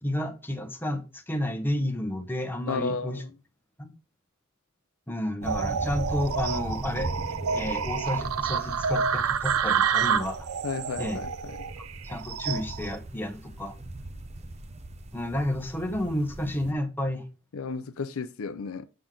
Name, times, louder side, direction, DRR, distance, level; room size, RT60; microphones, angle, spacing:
voice 1, 0.0-3.2 3.8-3.9 5.1-10.5 11.0-11.2 11.8-13.7 15.1-17.2, left 1 dB, 10° left, 1.0 m, -31 dB
voice 2, 2.7-3.2 10.6-11.6 17.5-18.9, left 4 dB, 70° left, 0.5 m, -33 dB
sound 1, 5.4-16.7, right 1 dB, 30° right, 0.7 m, -39 dB
sound 2, 5.4-12.9, right 6 dB, 90° right, 0.6 m, -29 dB
7.6 x 6.1 x 3.8 m
head